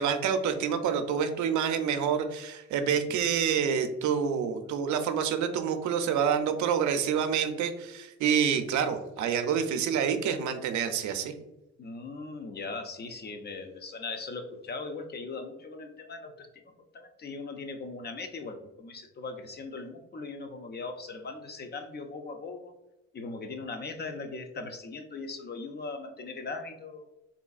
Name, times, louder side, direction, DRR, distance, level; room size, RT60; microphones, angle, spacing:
voice 1, 0.0-11.3, right 7 dB, 70° right, 7 dB, 0.5 m, -27 dB
voice 2, 11.8-16.5 16.9-22.7 23.1-27.1, left 3 dB, 35° left, 7 dB, 0.4 m, -39 dB
3.7 x 2.3 x 2.3 m, 0.95 s
cardioid pair, 90°, 30 cm